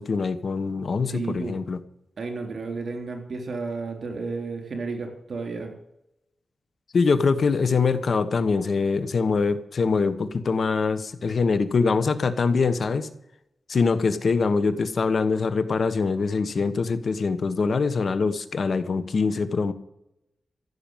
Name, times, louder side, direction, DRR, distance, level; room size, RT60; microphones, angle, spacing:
voice 1, 0.0-1.8 6.9-13.1 13.7-19.7, left 4 dB, 65° left, 11 dB, 1.2 m, -23 dB
voice 2, 1.0-1.6 2.2-5.7, right 4 dB, 65° right, 3 dB, 3.6 m, -32 dB
15.0 x 6.9 x 9.1 m, 0.82 s
wide cardioid pair, 110°, 0 cm